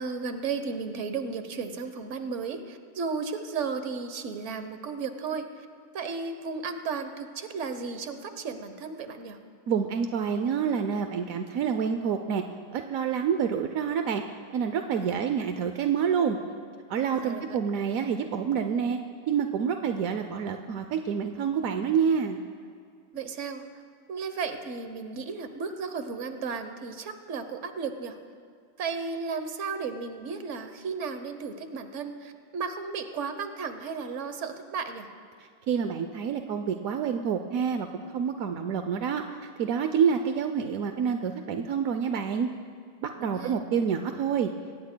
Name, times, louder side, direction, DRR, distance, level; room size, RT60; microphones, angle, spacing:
voice 1, 0.0-5.7 5.9-9.4 15.0-15.2 17.1-17.6 23.1-23.8 24.1-28.2 28.8-35.1 43.2-43.6, right 5 dB, 50° right, 8 dB, 1.0 m, -34 dB
voice 2, 9.7-12.4 12.7-14.2 14.5-16.4 16.9-19.0 19.3-22.4 35.7-39.2 39.6-42.5 43.0-44.5, right 7 dB, 70° right, 7 dB, 0.8 m, -27 dB
24.0 x 18.0 x 2.2 m, 2.2 s
omnidirectional pair, 2.0 m